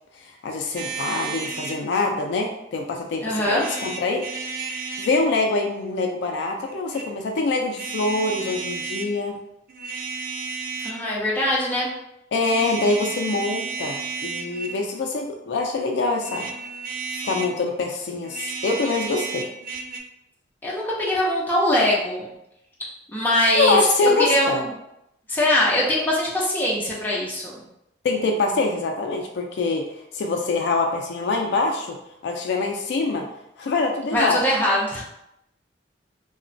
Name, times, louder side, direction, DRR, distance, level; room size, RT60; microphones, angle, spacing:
voice 1, 0.2-4.3 5.0-9.4 12.3-16.5 17.2-19.5 23.5-24.6 28.0-32.0 32.2-33.3 33.6-34.4, left 3 dB, 65° left, 2 dB, 0.3 m, -24 dB
sound 1, 0.8-1.8 3.5-5.2 6.7-7.1 7.7-9.1 9.7-11.1 12.4-14.8 16.2-17.6 18.2-20.0, right 4 dB, 50° right, 0.3 m, -32 dB
voice 2, 3.2-3.7 10.8-11.9 20.6-22.3 23.1-24.7 25.3-27.6 34.1-35.0, left 1 dB, 10° left, -5 dB, 0.6 m, -22 dB
2.9 x 2.1 x 2.6 m, 0.84 s
head